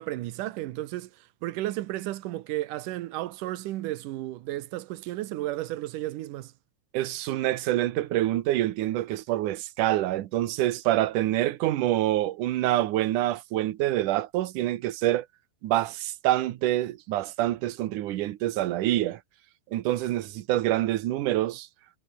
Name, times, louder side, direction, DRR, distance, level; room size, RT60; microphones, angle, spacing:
voice 1, 0.0-6.5, right 15 dB, 90° right, 1.8 m, -33 dB
voice 2, 6.9-15.3 15.6-19.2 19.7-21.7, right 14 dB, 70° right, 1.9 m, -26 dB
omnidirectional pair, 5.1 m